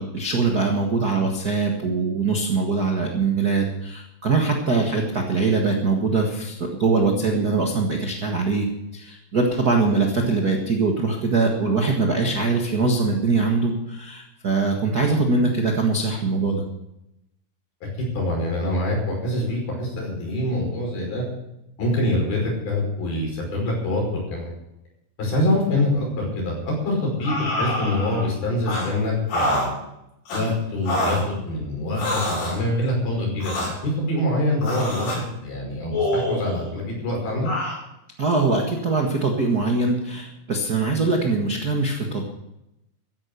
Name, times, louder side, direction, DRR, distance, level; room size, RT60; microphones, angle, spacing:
voice 1, 0.0-8.7 8.9-16.6 38.2-42.3, right 3 dB, 90° right, 1 dB, 0.8 m, -22 dB
voice 2, 18.0-21.2 21.8-24.0 24.3-24.5 25.2-29.7 30.3-37.5, left 1 dB, 65° left, -1 dB, 7.3 m, -25 dB
sound 1, 27.2-28.3 28.7-28.9 29.3-29.7 30.3-30.4 30.9-31.2 31.9-32.6 33.4-33.7 34.6-35.2 35.9-36.7 37.5-37.8, left 1 dB, 85° left, 8.1 m, -26 dB
14.5 x 10.5 x 6.9 m, 0.86 s
omnidirectional pair, 4.6 m